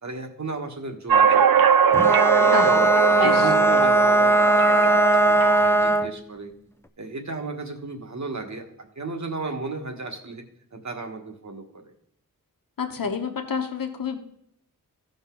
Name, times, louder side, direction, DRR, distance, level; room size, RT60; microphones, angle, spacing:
voice 1, 0.0-2.1 2.5-2.8 3.1-6.5 7.0-10.4 10.7-11.9, right 3 dB, 55° right, 4 dB, 1.6 m, -35 dB
sound 1, 1.1-5.9, right 7 dB, 80° right, 0.5 m, -21 dB
Bowed string instrument, 1.9-6.2, right 1 dB, 5° left, 0.5 m, -19 dB
voice 2, 2.4-3.5 12.8-14.2, left 6 dB, 75° left, 4 dB, 1.1 m, -29 dB
15.5 x 5.4 x 3.9 m, 0.72 s
wide cardioid pair, 100°, 34 cm